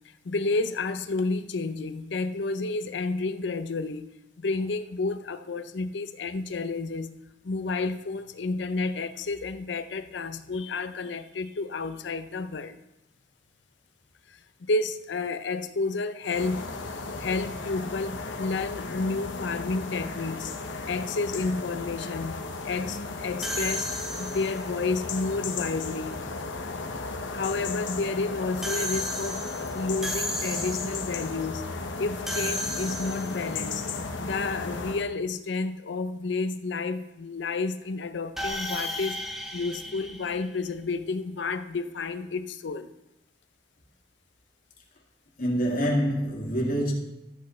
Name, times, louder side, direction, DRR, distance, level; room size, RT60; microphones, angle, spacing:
voice 1, 0.0-4.1 4.4-7.1 7.4-12.8 14.3-16.7 17.2-20.5 20.9-23.9 24.2-26.2 27.3-29.5 29.7-31.6 32.0-33.9 34.2-39.3 39.5-42.9, left 3 dB, 75° left, 11 dB, 0.6 m, -31 dB
sound 1, 16.2-35.1, left 3 dB, 90° left, 0.9 m, -35 dB
sound 2, 23.4-24.7 28.6-31.1 32.3-33.5 38.4-40.9, left 1 dB, ahead, 0.8 m, -34 dB
voice 2, 45.4-46.9, equal, 50° left, -3 dB, 2.2 m, -26 dB
13.5 x 8.2 x 3.2 m, 0.91 s
head